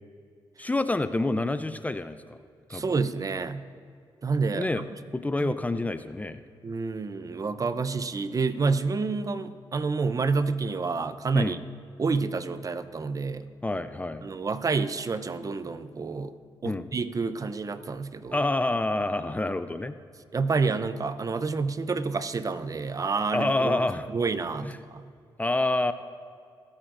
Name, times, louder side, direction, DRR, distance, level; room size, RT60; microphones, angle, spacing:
voice 1, 0.6-2.4 2.7-2.8 4.5-4.8 5.1-6.4 11.3-11.6 13.6-14.2 16.6-16.9 18.3-20.0 23.3-24.1 24.6-24.7 25.4-25.9, left 2 dB, 15° left, 11 dB, 0.4 m, -27 dB
voice 2, 2.7-3.6 4.2-4.9 5.4-5.5 6.6-11.6 12.0-13.5 14.2-16.3 16.6-18.4 20.3-23.8 24.1-25.1, right 4 dB, 40° right, 12 dB, 0.6 m, -28 dB
24.5 x 8.7 x 2.6 m, 2.3 s
cardioid pair, 70°, 9 cm